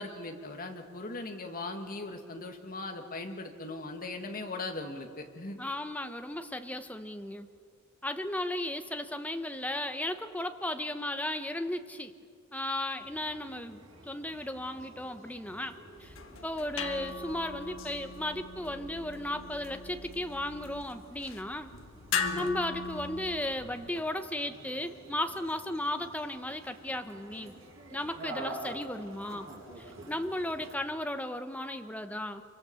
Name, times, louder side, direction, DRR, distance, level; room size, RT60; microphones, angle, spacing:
voice 1, 0.0-5.6 22.1-22.5, left 2 dB, 45° left, 4 dB, 2.2 m, -39 dB
voice 2, 5.5-7.5 8.0-12.1 12.5-15.7 16.0-16.1 16.4-21.7 22.3-27.5 27.9-29.5 29.8-32.4, left 1 dB, 5° left, 8 dB, 1.0 m, -35 dB
sound 1, 13.0-30.7, right 1 dB, 70° right, 6.8 m, -49 dB
sound 2, 16.0-24.0, left 5 dB, 70° left, 1.5 m, -39 dB
26.5 x 24.0 x 7.0 m, 2.1 s
head